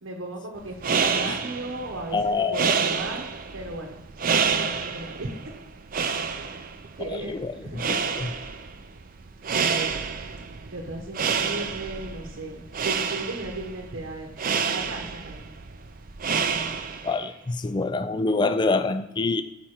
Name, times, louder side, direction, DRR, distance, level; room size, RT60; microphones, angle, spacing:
voice 1, 0.0-5.3 7.0-7.8 9.5-10.1 10.7-14.3 14.7-15.5, right 2 dB, 80° right, -1 dB, 0.9 m, -36 dB
sound 1, 0.6-17.2, right 6 dB, 45° right, 0.5 m, -29 dB
voice 2, 2.1-2.7 7.0-8.3 17.0-19.4, left 3 dB, 25° left, 11 dB, 0.3 m, -26 dB
5.7 x 4.3 x 6.3 m, 1.0 s
head